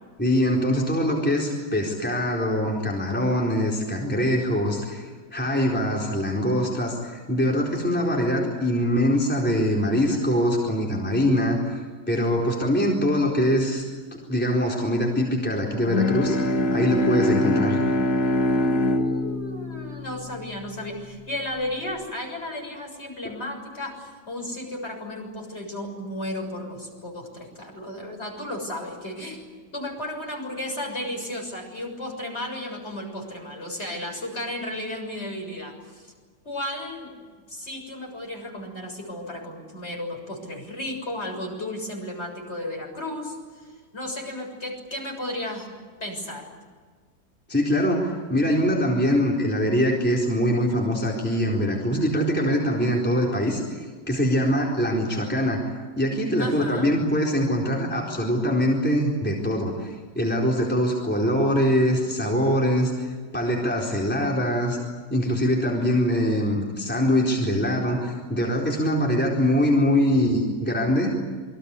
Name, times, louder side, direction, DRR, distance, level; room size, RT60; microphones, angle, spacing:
voice 1, 0.2-11.8 12.1-13.8 14.3-17.8 47.5-53.8 54.1-55.6 56.0-63.1 63.3-64.8 65.1-71.1, equal, 5° left, -2 dB, 4.2 m, -23 dB
Bowed string instrument, 15.7-21.1, left 1 dB, 60° left, 2.5 m, -24 dB
voice 2, 18.5-29.5 29.7-36.1 36.4-45.7 46.0-46.5 56.4-56.9, left 1 dB, 35° left, 2 dB, 7.3 m, -34 dB
28.0 x 23.5 x 8.4 m, 1.5 s
omnidirectional pair, 2.0 m